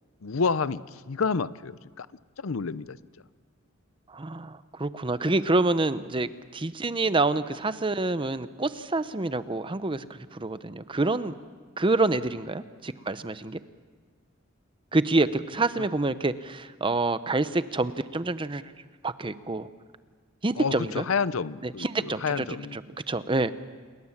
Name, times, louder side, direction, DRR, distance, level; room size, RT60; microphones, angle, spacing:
voice 1, 0.2-2.1 2.4-3.0 15.8-15.9 20.5-22.8, left 5 dB, 75° left, 17 dB, 0.7 m, -29 dB
voice 2, 4.1-10.1 10.3-11.3 11.8-13.6 14.9-18.6 19.0-19.7 20.4-21.0 21.6-22.4 22.7-22.8 23.1-23.5, right 2 dB, 25° right, 13 dB, 0.7 m, -27 dB
28.5 x 22.0 x 7.3 m, 1.5 s
head